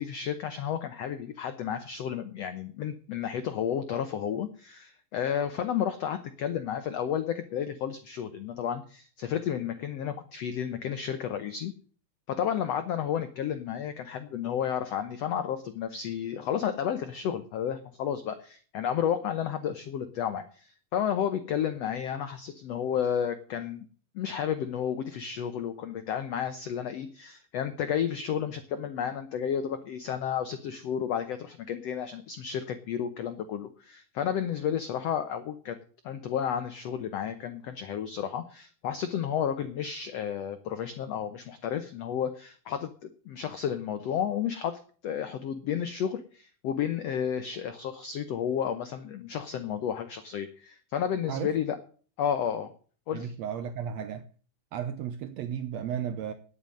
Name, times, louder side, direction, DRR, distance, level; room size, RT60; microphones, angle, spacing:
voice 1, 0.0-11.7 12.3-23.8 24.1-35.8 36.0-51.8 52.2-52.7 53.1-53.3, left 8 dB, 80° left, 1.4 m, -32 dB
voice 2, 53.1-54.3 54.7-56.3, right 8 dB, 90° right, 1.5 m, -34 dB
9.8 x 8.9 x 7.7 m
omnidirectional pair, 4.2 m